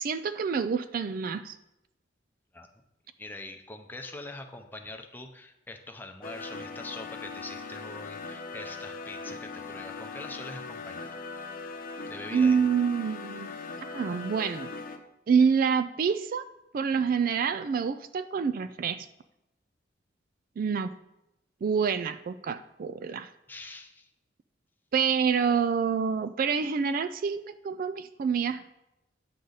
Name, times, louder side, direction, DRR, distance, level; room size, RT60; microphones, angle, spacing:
voice 1, 0.0-1.6 12.3-14.7 15.3-16.4 16.7-19.1 20.6-20.9 21.6-23.3 24.9-28.7, right 6 dB, 45° right, 12 dB, 0.3 m, -27 dB
voice 2, 3.2-11.2 12.1-12.7 23.5-24.1, left 2 dB, 10° left, 4 dB, 0.6 m, -43 dB
sound 1, 6.2-15.0, left 4 dB, 45° left, 0.8 m, -40 dB
9.4 x 6.6 x 3.9 m, 0.91 s
head